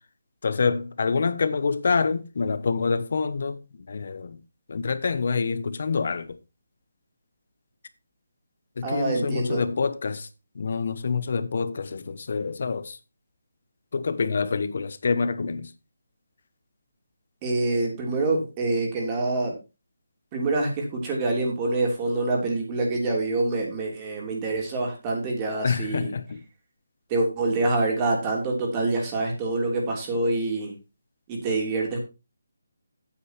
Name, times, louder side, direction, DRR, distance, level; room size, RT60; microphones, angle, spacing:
voice 1, 0.4-3.6 3.9-4.4 4.7-6.3 8.8-10.3 10.5-13.0 13.9-15.7 25.6-26.4, left 5 dB, 55° left, 1.1 m, -26 dB
voice 2, 8.8-9.6 17.4-19.6 20.3-26.1 27.1-30.7 31.3-32.0, right 2 dB, 25° right, 3.2 m, -26 dB
8.9 x 7.8 x 4.5 m
figure-of-eight pair, 155°, 0 cm